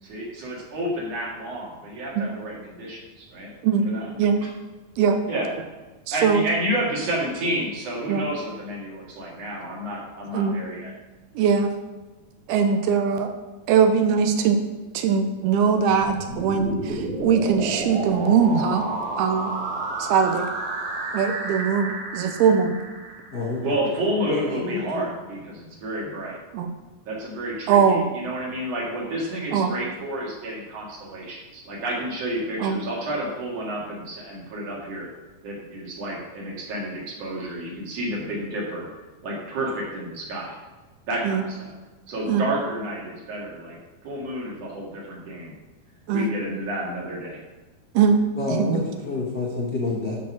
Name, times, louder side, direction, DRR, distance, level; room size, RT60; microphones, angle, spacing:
voice 1, 0.0-3.5 3.8-4.1 5.3-5.5 6.1-10.9 23.6-26.4 27.1-35.1 35.4-38.9 39.2-40.6 41.1-41.7 42.1-43.8 44.0-45.5 46.1-47.4, right 1 dB, 45° right, -3 dB, 2.7 m, -30 dB
voice 2, 6.1-6.4 8.1-8.3 10.3-10.6 11.4-11.7 12.5-13.3 13.7-14.6 14.9-18.9 19.2-19.5 20.0-20.5 21.1-22.8 26.5-26.7 27.7-28.0 29.5-29.7 32.6-32.8 41.2-41.4 42.3-42.5 46.1-46.3 47.9-48.2 48.5-48.8, right 6 dB, 80° right, 6 dB, 2.6 m, -21 dB
sound 1, 15.8-23.7, right 2 dB, 65° right, 3.5 m, -31 dB
voice 3, 23.3-23.8 24.3-25.0 48.3-50.1, left 3 dB, 75° left, -5 dB, 0.9 m, -28 dB
12.5 x 4.7 x 6.0 m, 1.2 s
omnidirectional pair, 4.6 m